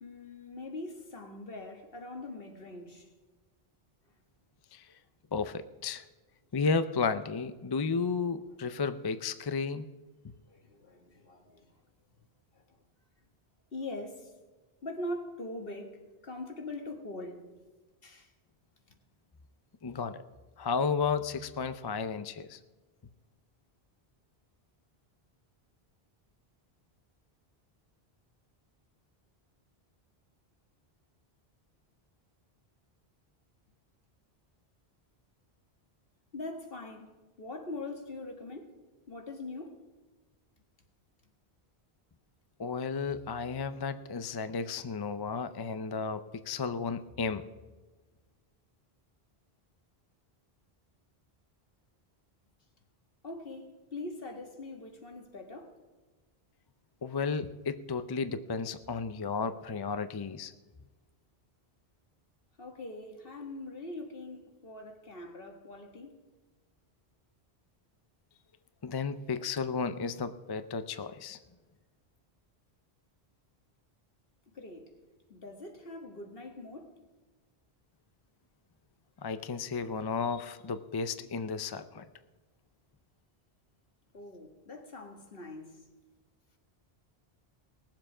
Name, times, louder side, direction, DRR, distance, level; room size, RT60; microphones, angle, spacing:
voice 1, 0.0-3.1 10.5-11.6 13.7-14.3 14.8-17.4 18.0-18.3 36.3-38.7 39.1-39.7 53.2-55.7 62.6-66.1 74.6-74.9 75.3-76.9 84.1-85.7, left 2 dB, 60° left, 1.7 m, -42 dB
voice 2, 5.3-6.0 6.5-9.9 19.8-20.2 20.6-22.6 42.6-47.4 57.0-60.5 68.8-71.4 79.2-82.0, left 5 dB, 35° left, 0.4 m, -33 dB
19.5 x 7.5 x 4.9 m
omnidirectional pair, 1.1 m